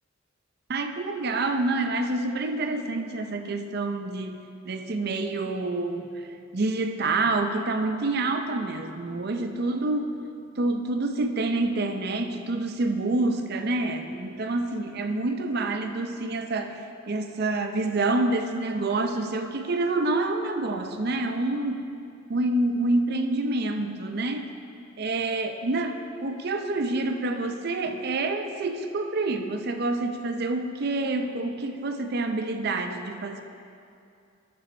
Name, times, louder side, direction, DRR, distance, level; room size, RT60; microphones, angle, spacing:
voice 1, 0.7-6.3 6.5-10.1 10.6-21.9 22.3-24.5 25.0-33.4, right 2 dB, 50° right, 6 dB, 0.6 m, -27 dB
12.5 x 6.0 x 4.2 m, 2.5 s
head